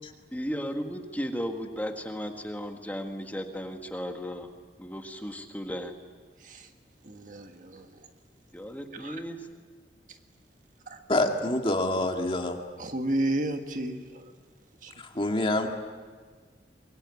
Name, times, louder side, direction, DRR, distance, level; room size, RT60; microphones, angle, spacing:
voice 1, 0.3-4.5 4.8-5.9 8.5-9.5, equal, 10° left, 4 dB, 1.7 m, -35 dB
voice 2, 6.4-6.7 7.0-8.0 9.0-9.2 10.9-11.0 12.8-14.3 14.8-14.9, right 1 dB, 45° right, 6 dB, 1.7 m, -32 dB
voice 3, 11.1-12.6 15.0-15.7, left 1 dB, 30° left, 4 dB, 2.0 m, -26 dB
24.5 x 23.0 x 9.7 m, 1.6 s
head